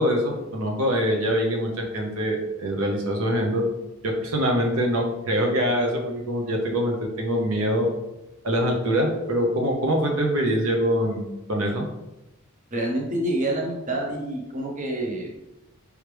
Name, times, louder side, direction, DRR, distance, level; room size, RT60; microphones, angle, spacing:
voice 1, 0.0-3.6 4.0-7.9 8.4-11.8, equal, 70° right, 0 dB, 0.9 m, -24 dB
voice 2, 12.7-15.3, right 1 dB, 35° right, -1 dB, 0.8 m, -27 dB
4.9 x 3.1 x 3.3 m, 0.94 s
head